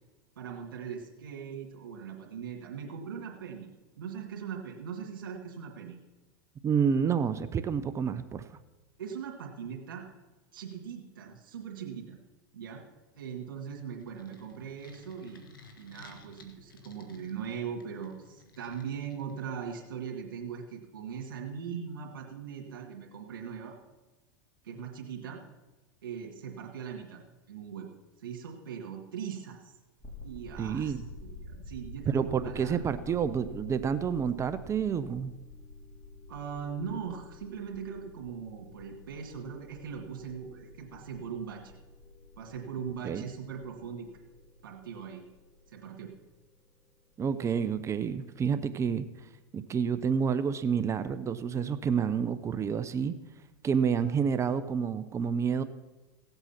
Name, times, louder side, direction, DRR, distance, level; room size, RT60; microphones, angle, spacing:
voice 1, 0.4-3.7 4.0-6.0 9.0-10.1 10.5-12.2 12.5-12.8 13.1-15.4 15.8-23.8 24.6-25.4 26.0-27.2 27.5-27.9 28.2-29.8 30.2-32.8 33.1-33.2 36.3-41.7 42.4-44.1 44.6-45.3 45.7-46.1, right 7 dB, 85° right, -1 dB, 2.2 m, -40 dB
voice 2, 6.6-8.5 30.6-31.0 32.1-35.3 43.0-43.2 47.2-49.1 49.5-53.1 53.6-55.6, right 7 dB, 25° right, 12 dB, 0.7 m, -29 dB
sound 1, 13.5-19.9, left 2 dB, 90° left, 1.7 m, -55 dB
sound 2, 30.0-46.9, left 1 dB, 10° left, 5.2 m, -49 dB
17.0 x 8.0 x 5.8 m, 1.1 s
hypercardioid pair, 105°, 11 cm